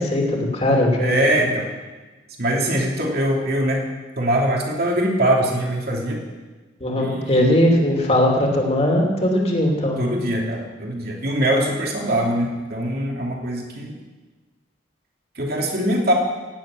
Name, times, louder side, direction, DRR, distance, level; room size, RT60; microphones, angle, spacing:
voice 1, 0.0-1.5 6.8-10.0, left 1 dB, 30° left, 0 dB, 2.7 m, -19 dB
voice 2, 1.0-1.7 2.4-3.8 4.2-6.2 7.0-7.5 10.0-13.9 15.4-16.1, right 1 dB, 55° right, -1 dB, 2.7 m, -22 dB
17.5 x 7.5 x 9.0 m, 1.2 s
head